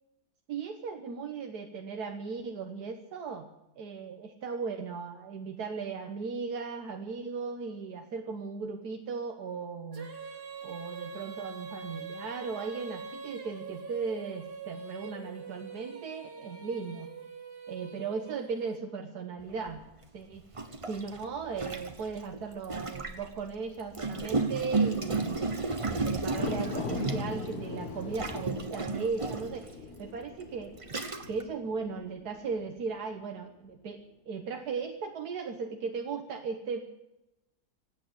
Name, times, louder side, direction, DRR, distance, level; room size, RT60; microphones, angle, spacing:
voice 1, 0.5-3.5 3.8-10.1 10.6-17.1 17.7-19.8 20.1-20.4 20.9-25.4 25.9-30.7 31.3-36.8, right 5 dB, 85° right, 4 dB, 1.7 m, -37 dB
Female singing, 9.9-19.1, right 5 dB, 40° right, 1.5 m, -44 dB
Gurgling, 19.7-19.8 20.5-23.3 23.9-27.5 28.1-29.6 30.3-30.4 30.8-31.4, right 3 dB, 25° right, 1.0 m, -32 dB
sound 1, 26.2-32.7 33.1-33.2, left 3 dB, 70° left, 2.4 m, -40 dB
17.0 x 8.6 x 9.9 m, 0.91 s
omnidirectional pair, 1.6 m